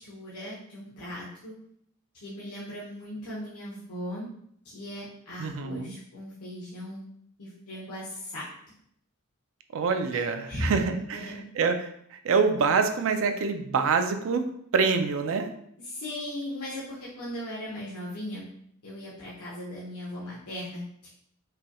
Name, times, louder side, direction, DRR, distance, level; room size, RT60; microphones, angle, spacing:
voice 1, 0.0-1.5 2.1-4.3 4.6-7.0 7.4-8.4 10.1-10.7 11.1-11.4 15.8-18.5 18.8-21.1, left 1 dB, 85° left, -7 dB, 0.9 m, -38 dB
voice 2, 5.4-5.9 9.7-14.5 14.7-15.5, right 5 dB, 65° right, 7 dB, 0.4 m, -26 dB
4.9 x 2.3 x 2.9 m, 0.69 s
head